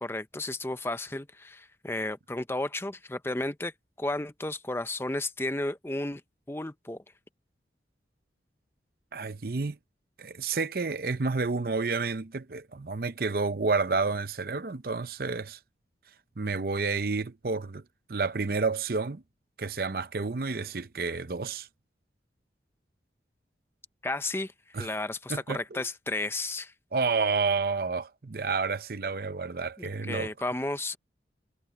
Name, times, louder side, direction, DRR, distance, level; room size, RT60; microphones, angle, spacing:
voice 1, 0.0-3.7 4.0-6.2 6.5-7.0 24.0-26.7 29.8-31.0, left 2 dB, 15° left, 0.6 m, -33 dB
voice 2, 9.1-9.8 10.2-15.6 16.4-17.8 18.1-19.2 19.6-21.7 24.7-24.9 25.3-25.8 26.9-30.3, right 4 dB, 55° right, 0.7 m, -30 dB
head